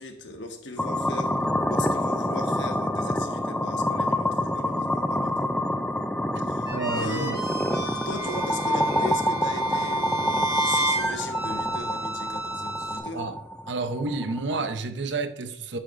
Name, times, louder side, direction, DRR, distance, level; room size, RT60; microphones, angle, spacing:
voice 1, 0.0-5.5 6.4-13.3, left 2 dB, 70° left, 1.3 m, -38 dB
sound 1, 0.8-14.8, left 1 dB, 5° left, 0.4 m, -27 dB
sound 2, 6.7-13.0, right 2 dB, 20° right, 2.7 m, -31 dB
voice 2, 6.7-7.4 13.1-13.4 13.7-15.8, right 3 dB, 70° right, 0.7 m, -30 dB
9.9 x 8.2 x 2.5 m
head